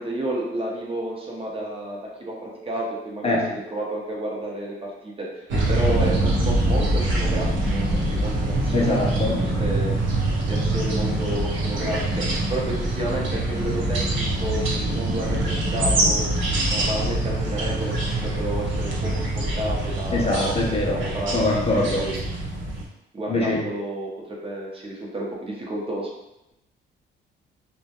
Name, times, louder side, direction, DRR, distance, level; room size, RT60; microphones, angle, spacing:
voice 1, 0.0-3.4 3.7-5.4 5.7-9.3 9.6-9.9 10.5-12.2 12.5-16.3 16.6-17.9 18.2-22.2 23.1-26.1, right 1 dB, 30° right, -3 dB, 0.6 m, -31 dB
sound 1, 5.5-22.8, right 1 dB, 75° right, 0.6 m, -24 dB
voice 2, 8.7-9.4 16.1-16.2 20.1-21.0 21.3-22.0 23.3-23.7, left 2 dB, 30° left, -2 dB, 0.4 m, -23 dB
2.1 x 2.1 x 2.8 m, 0.89 s
cardioid pair, 90°, 20 cm